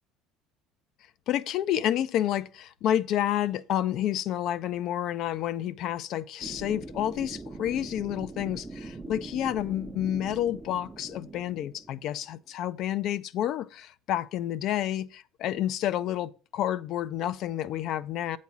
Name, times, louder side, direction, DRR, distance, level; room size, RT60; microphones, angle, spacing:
voice 1, 1.3-18.4, left 11 dB, 60° left, 0.5 m, -29 dB
sound 1, 6.4-12.3, right 3 dB, 20° right, 0.7 m, -42 dB
8.3 x 4.1 x 6.0 m
hypercardioid pair, 75°, 0 cm